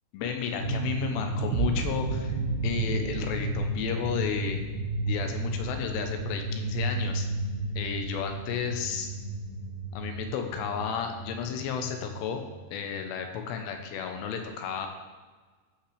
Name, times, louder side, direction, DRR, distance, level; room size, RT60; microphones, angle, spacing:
voice 1, 0.1-2.4 2.6-4.7 5.1-7.3 7.8-9.1 9.9-12.4 12.7-14.9, left 7 dB, 80° left, 5 dB, 2.9 m, -32 dB
sound 1, 0.6-12.6, right 2 dB, 50° left, 3.3 m, -33 dB
sound 2, 1.5-7.5, right 9 dB, 90° right, 3.0 m, -37 dB
14.5 x 5.8 x 3.3 m, 1.4 s
omnidirectional pair, 5.1 m